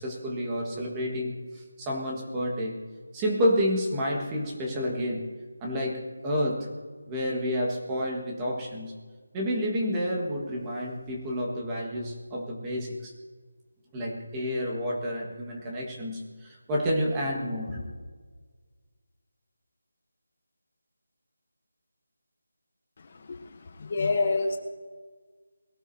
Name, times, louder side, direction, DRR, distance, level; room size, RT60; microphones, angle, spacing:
voice 1, 0.0-2.7 3.1-5.3 5.6-6.7 7.1-8.9 9.3-13.1 13.9-17.9, equal, 10° right, -2 dB, 1.7 m, -29 dB
voice 2, 23.8-24.6, left 3 dB, 35° left, 4 dB, 1.1 m, -26 dB
21.5 x 17.5 x 2.8 m, 1.5 s
figure-of-eight pair, 175°, 0 cm